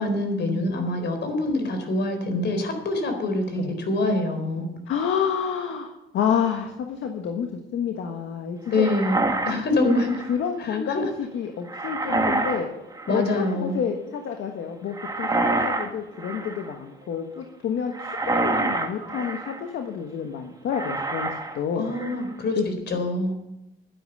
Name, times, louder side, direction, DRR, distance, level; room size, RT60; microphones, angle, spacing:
voice 1, 0.0-4.7 8.7-9.2 9.5-10.2 10.6-11.0 13.1-13.8 21.8-22.6 22.9-23.3, left 2 dB, 60° left, 5 dB, 4.0 m, -25 dB
voice 2, 4.9-8.8 10.3-12.7 13.1-21.3 21.5-21.9 22.6-22.7, left 7 dB, 75° left, 4 dB, 1.5 m, -29 dB
sound 1, 8.7-10.3 11.7-12.7 12.9-13.5 14.9-15.9 16.2-16.7 17.9-19.6 20.7-21.6 21.9-22.3, right 2 dB, 20° right, 1.7 m, -27 dB
12.0 x 10.5 x 6.8 m, 0.92 s
cardioid pair, 90°, 20 cm